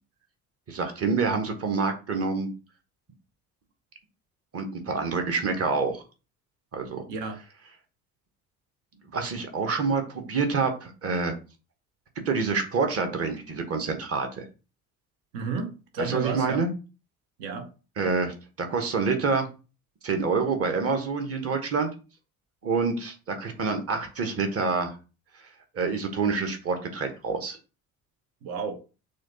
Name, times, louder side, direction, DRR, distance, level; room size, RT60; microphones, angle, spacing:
voice 1, 0.7-2.5 4.5-6.0 6.7-7.0 9.1-11.3 12.2-14.5 16.0-16.7 18.0-19.5 20.0-21.9 22.6-24.9 25.7-27.6, right 4 dB, 30° right, 1.1 m, -27 dB
voice 2, 7.1-7.4 15.3-16.6 17.4-17.7 28.4-28.8, right 4 dB, 60° right, 0.9 m, -32 dB
6.2 x 2.3 x 2.8 m
figure-of-eight pair, 55°, 44 cm